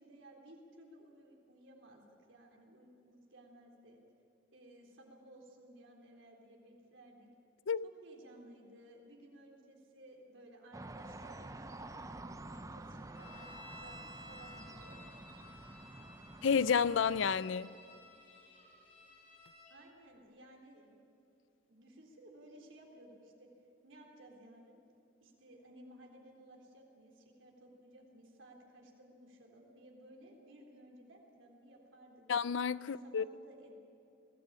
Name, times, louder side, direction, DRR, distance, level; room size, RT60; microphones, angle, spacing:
voice 1, 0.0-4.0 4.5-7.3 7.8-15.0 19.7-21.0 21.7-23.5 23.8-24.8 25.2-32.2 32.7-33.7, right 1 dB, 85° right, 3.8 m, -57 dB
sound 1, 10.7-17.4, right 2 dB, 15° right, 0.5 m, -49 dB
sound 2, 13.1-19.7, left 2 dB, 35° left, 5.5 m, -55 dB
voice 2, 16.4-17.7 32.3-33.3, left 6 dB, 80° left, 0.5 m, -30 dB
21.5 x 16.5 x 8.7 m
head